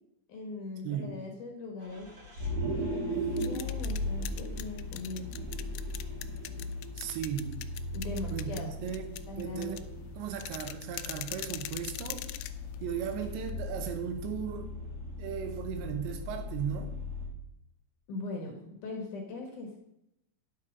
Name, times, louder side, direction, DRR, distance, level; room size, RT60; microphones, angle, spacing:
voice 1, 0.3-2.1 2.7-5.3 7.9-8.9 9.3-10.1 18.1-19.8, left 3 dB, 60° left, 1 dB, 2.4 m, -40 dB
voice 2, 0.8-1.2 7.0-7.6 8.3-9.8 10.2-12.3 12.8-14.7 15.2-16.9, right 8 dB, 90° right, 6 dB, 3.4 m, -36 dB
Vehicle, 1.8-17.3, left 1 dB, 50° right, 1.1 m, -38 dB
sound 1, 3.1-13.5, left 15 dB, 90° left, 2.8 m, -44 dB
9.9 x 7.5 x 5.2 m, 0.83 s
omnidirectional pair, 5.0 m